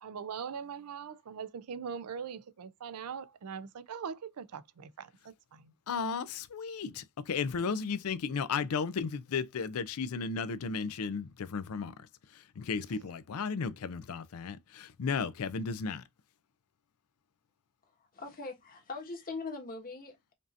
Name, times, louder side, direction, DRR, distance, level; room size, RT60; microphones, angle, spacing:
voice 1, 0.0-5.1 5.5-5.7 7.6-7.7, right 6 dB, 85° right, 0.5 m, -41 dB
voice 2, 5.9-11.9 12.6-16.0, left 5 dB, 70° left, 0.4 m, -34 dB
voice 3, 18.1-20.3, left 3 dB, 40° left, 1.4 m, -41 dB
5.2 x 2.7 x 2.4 m
head